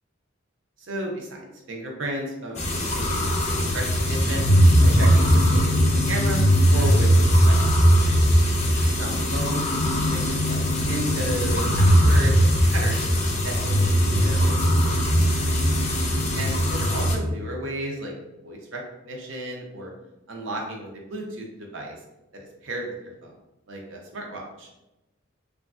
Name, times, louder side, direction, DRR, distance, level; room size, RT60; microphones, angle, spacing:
voice 1, 0.8-2.6 2.9-4.4 4.8-5.8 6.1-6.4 6.7-7.1 7.5-8.1 8.7-13.1 13.4-15.2 15.4-15.5 16.4-18.2 18.4-19.9 20.3-21.9 22.3-23.3 23.7-24.7, right 1 dB, 70° right, 1 dB, 0.7 m, -34 dB
sound 1, 2.6-17.2, equal, 35° left, 0.5 m, -20 dB
3.0 x 2.4 x 2.4 m, 0.97 s
head